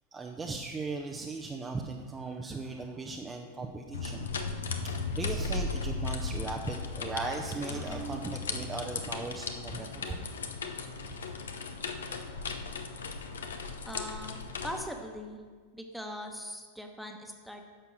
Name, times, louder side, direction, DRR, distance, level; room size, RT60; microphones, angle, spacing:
voice 1, 0.1-4.3 4.8-10.2, right 3 dB, 15° right, 1 dB, 0.8 m, -38 dB
sound 1, 3.9-14.8, left 4 dB, 65° left, 0.9 m, -36 dB
voice 2, 13.8-14.4 14.6-15.4 15.7-17.6, equal, ahead, 3 dB, 1.3 m, -40 dB
11.0 x 6.8 x 6.4 m, 1.5 s
figure-of-eight pair, 90°, 0 cm